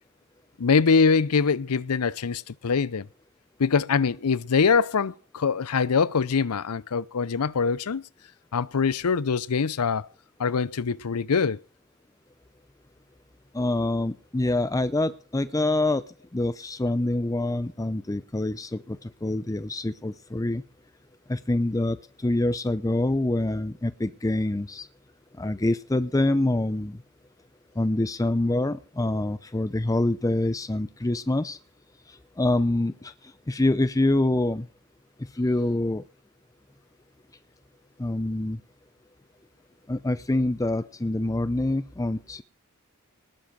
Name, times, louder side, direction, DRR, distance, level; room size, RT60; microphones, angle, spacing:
voice 1, 0.6-3.1 3.6-8.0 8.5-10.1 10.4-11.6, left 5 dB, 85° left, 0.6 m, -23 dB
voice 2, 13.5-16.0 16.3-20.6 21.3-24.9 25.4-27.0 27.8-31.6 32.1-34.7 35.2-36.0 38.0-38.6 39.9-42.4, left 2 dB, 15° left, 0.6 m, -26 dB
19.0 x 7.6 x 6.2 m
head